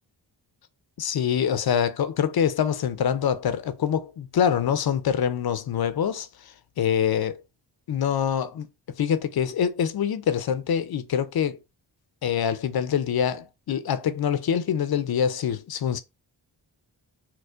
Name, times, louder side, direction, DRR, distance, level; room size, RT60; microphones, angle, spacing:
voice 1, 1.0-7.4 7.9-8.7 9.0-11.6 12.2-16.0, left 8 dB, 55° left, 0.5 m, -25 dB
4.3 x 2.1 x 2.4 m
cardioid pair, 50°, 46 cm